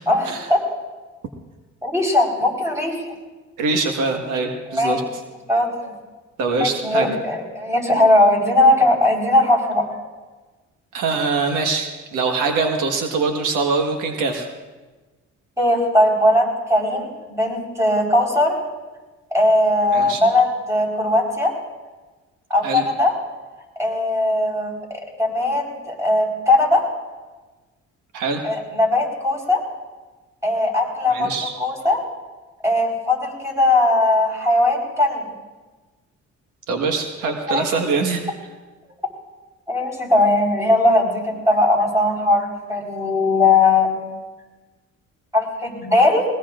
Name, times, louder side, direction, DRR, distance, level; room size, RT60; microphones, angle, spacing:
voice 1, 0.1-0.6 1.8-3.1 4.7-5.0 5.5-5.7 6.6-9.9 15.6-18.6 19.3-21.5 22.5-23.1 23.8-26.8 28.4-29.6 30.4-31.3 31.6-32.0 32.6-35.2 37.5-37.8 39.7-44.0 45.3-46.3, left 2 dB, 10° right, -1 dB, 4.4 m, -19 dB
voice 2, 3.6-5.0 6.4-7.1 10.9-14.5 19.9-20.2 22.6-22.8 28.1-28.4 31.1-31.5 36.7-38.2, right 4 dB, 90° right, 4 dB, 1.5 m, -23 dB
20.5 x 20.0 x 2.5 m, 1.3 s
cardioid pair, 90°, 30 cm